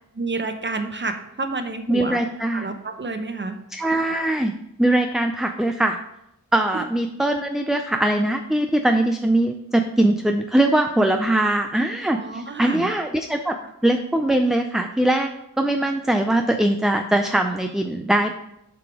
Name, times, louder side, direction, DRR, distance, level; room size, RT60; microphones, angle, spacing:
voice 1, 0.1-2.2 2.5-3.6 6.7-6.8 12.1-12.9, right 3 dB, 35° right, 7 dB, 0.7 m, -29 dB
voice 2, 1.9-2.7 3.7-4.5 4.8-6.0 6.5-15.3 15.6-18.3, right 1 dB, ahead, 5 dB, 0.3 m, -21 dB
7.7 x 4.1 x 4.7 m, 0.81 s
wide cardioid pair, 95°, 34 cm